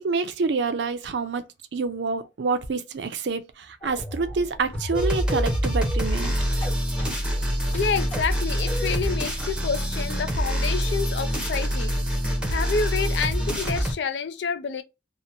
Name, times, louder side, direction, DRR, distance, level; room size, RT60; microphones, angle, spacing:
voice 1, 0.0-1.4 1.7-6.5, right 4 dB, 80° right, 0.5 m, -27 dB
sound 1, 3.8-9.0, left 1 dB, 30° left, 1.1 m, -36 dB
sound 2, 4.9-13.9, equal, 5° right, 0.6 m, -25 dB
voice 2, 7.7-11.9 12.5-14.8, left 5 dB, 80° left, 0.4 m, -28 dB
2.8 x 2.1 x 2.5 m
head